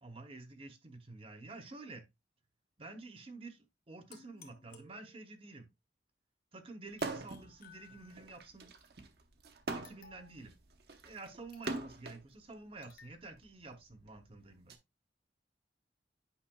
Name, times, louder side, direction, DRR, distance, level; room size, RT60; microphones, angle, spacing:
voice 1, 0.0-2.0 2.8-5.7 6.5-8.7 9.7-10.5 11.0-14.8, right 3 dB, 30° right, 0.9 m, -50 dB
sound 1, 4.1-5.5 7.0-8.4 9.7-10.4 11.5-12.1 12.8-13.2, left 5 dB, 55° left, 1.2 m, -59 dB
sound 2, 6.9-7.5 7.9-12.2 13.1-14.8, right 3 dB, 60° right, 0.9 m, -42 dB
8.8 x 5.5 x 2.2 m
head